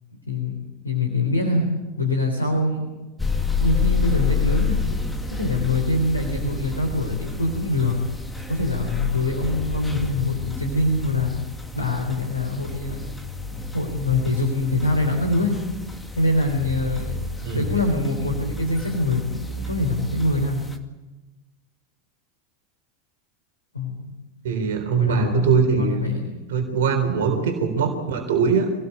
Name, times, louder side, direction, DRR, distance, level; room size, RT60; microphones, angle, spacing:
voice 1, 0.8-1.7 2.0-2.9 3.6-4.8 5.3-8.0 8.5-11.3 11.7-13.0 13.5-15.6 16.2-20.6 23.7-24.1 25.0-25.5 25.8-26.2, left 2 dB, 80° left, 3 dB, 3.6 m, -24 dB
sound 1, 3.2-20.8, left 4 dB, 5° left, 2.4 m, -29 dB
voice 2, 17.4-17.7 24.4-26.0 26.5-28.7, right 6 dB, 60° right, 4 dB, 3.6 m, -22 dB
26.0 x 19.0 x 8.3 m, 1.1 s
figure-of-eight pair, 85°, 0 cm